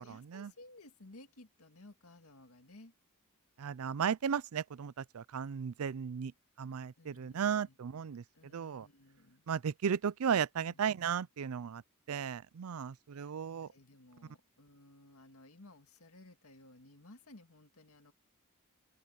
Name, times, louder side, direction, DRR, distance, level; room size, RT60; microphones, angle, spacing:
voice 1, 0.0-2.9 7.0-7.8 8.3-9.5 10.6-10.9 13.1-13.3 13.6-18.1, left 2 dB, 75° left, 2.1 m, -57 dB
voice 2, 3.6-6.3 6.6-8.2 8.5-8.9 9.5-11.8 12.1-13.7, right 7 dB, 70° right, 0.4 m, -35 dB
head